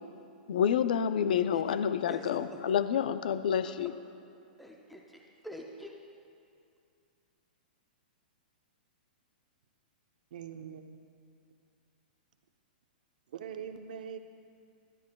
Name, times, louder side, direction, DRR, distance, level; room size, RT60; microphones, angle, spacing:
voice 1, 0.5-3.9, left 8 dB, 60° left, 12 dB, 0.4 m, -28 dB
voice 2, 2.1-2.6 3.6-3.7 4.6-5.9, equal, ahead, 0 dB, 0.4 m, -46 dB
voice 3, 10.3-10.9 13.3-14.2, right 8 dB, 55° right, 7 dB, 0.7 m, -42 dB
17.0 x 12.5 x 2.2 m, 2.4 s
hypercardioid pair, 175°, 5 cm